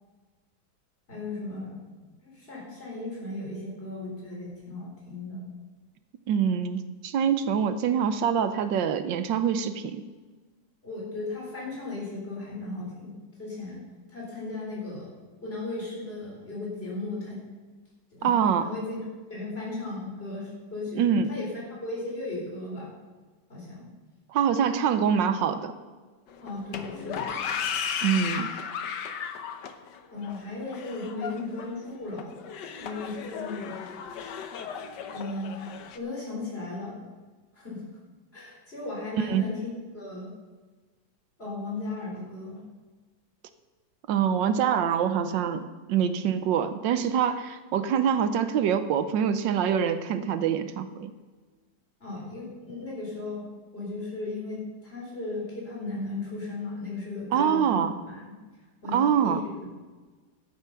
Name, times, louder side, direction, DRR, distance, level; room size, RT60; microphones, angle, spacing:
voice 1, 1.1-1.8 2.2-5.4 10.8-13.8 14.1-15.1 15.4-17.4 18.1-18.3 18.6-19.0 19.3-22.9 23.5-23.8 26.4-27.3 30.1-32.4 32.8-33.8 35.1-35.7 35.9-37.0 37.5-37.8 38.3-40.3 41.4-42.6 52.0-53.4 53.7-58.2 58.8-59.4, left 2 dB, 30° left, -4 dB, 4.6 m, -36 dB
voice 2, 6.3-10.0 18.2-18.7 20.9-21.3 24.3-25.7 28.0-28.5 39.3-39.4 44.1-51.1 57.3-57.9 58.9-59.4, right 8 dB, 85° right, 10 dB, 1.4 m, -25 dB
sound 1, 26.3-36.0, left 7 dB, 70° left, 1.4 m, -35 dB
12.0 x 9.3 x 5.8 m, 1.3 s
omnidirectional pair, 2.0 m